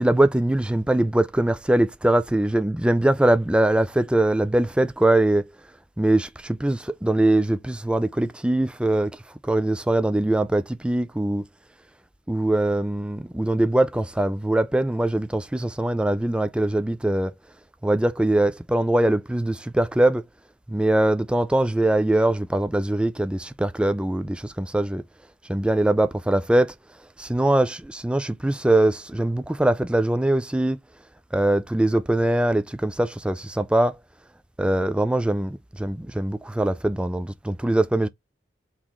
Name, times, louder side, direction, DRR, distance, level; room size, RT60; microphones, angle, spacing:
voice 1, 0.0-5.4 6.0-9.1 9.4-11.4 12.3-17.3 17.8-20.3 20.7-25.0 25.5-26.7 27.2-30.8 31.3-34.0 34.6-38.1, right 1 dB, 5° right, 0.3 m, -22 dB
4.0 x 3.0 x 3.6 m
head